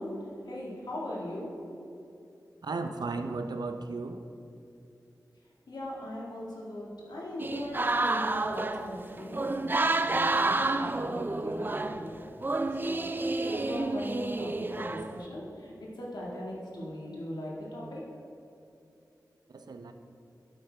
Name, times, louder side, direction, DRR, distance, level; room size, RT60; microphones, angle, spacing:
voice 1, 0.0-1.8 5.7-12.4 12.8-18.1, left 1 dB, 90° left, -4 dB, 1.8 m, -40 dB
voice 2, 2.6-4.2 19.5-19.9, right 3 dB, 80° right, 7 dB, 0.6 m, -35 dB
sound 1, 7.4-12.1 12.4-15.2, right 2 dB, 30° right, 0.3 m, -29 dB
8.4 x 8.1 x 3.3 m, 2.7 s
wide cardioid pair, 80°, 7 cm